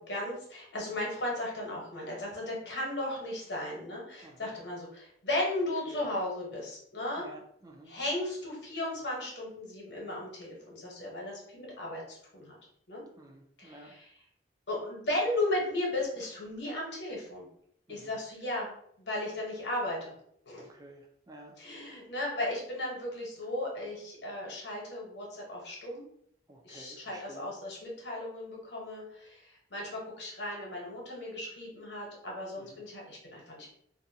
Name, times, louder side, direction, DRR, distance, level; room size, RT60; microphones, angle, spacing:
voice 1, 0.1-7.3 7.9-12.5 12.9-13.0 13.6-14.1 14.7-17.5 17.9-18.7 19.0-20.1 20.4-20.6 21.6-26.0 26.6-33.7, left 1 dB, 70° left, -3 dB, 1.0 m, -35 dB
voice 2, 7.2-8.0 13.2-13.9 17.9-18.2 20.6-21.6 26.5-27.5 32.6-32.8, right 1 dB, 20° right, 1 dB, 0.4 m, -51 dB
2.5 x 2.2 x 2.7 m, 0.68 s
head